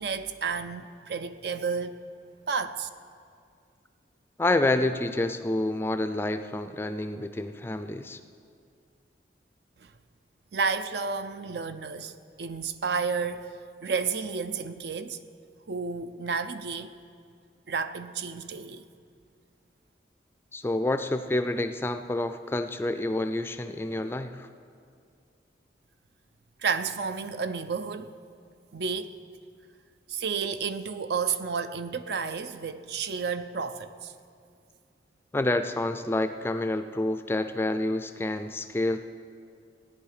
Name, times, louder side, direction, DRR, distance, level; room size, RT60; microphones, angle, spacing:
voice 1, 0.0-2.0 2.5-2.9 9.8-9.9 10.5-12.1 12.4-13.5 13.8-15.2 15.7-16.9 17.7-18.8 26.6-28.1 28.7-29.2 30.1-34.1, right 5 dB, 65° right, 0.5 m, -31 dB
voice 2, 4.4-8.2 20.5-24.5 35.3-39.0, left 2 dB, 15° left, 0.4 m, -28 dB
16.5 x 10.0 x 4.9 m
head